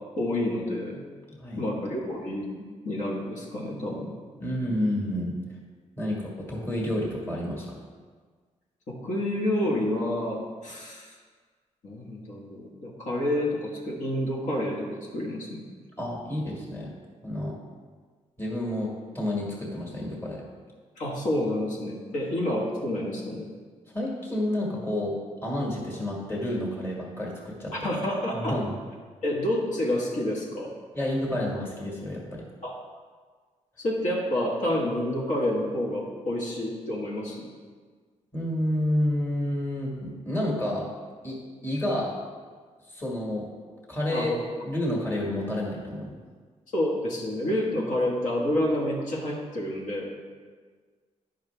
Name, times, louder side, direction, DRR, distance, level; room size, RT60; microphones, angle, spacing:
voice 1, 0.2-1.0 1.6-4.1 8.9-11.1 11.8-15.6 21.0-23.5 27.7-28.6 29.2-30.7 32.6-32.8 33.8-37.5 44.1-44.4 46.7-50.1, left 1 dB, 75° left, -3 dB, 1.6 m, -29 dB
voice 2, 1.3-1.6 4.4-5.4 6.0-7.8 16.0-16.9 17.2-17.6 18.4-20.4 23.9-27.7 28.3-28.7 30.9-32.5 38.3-40.9 41.2-41.4 41.6-42.2 42.9-43.5 43.9-44.3 44.6-46.2, left 1 dB, 20° left, -2 dB, 1.8 m, -30 dB
10.5 x 5.6 x 3.4 m, 1.5 s
wide cardioid pair, 130°, 13 cm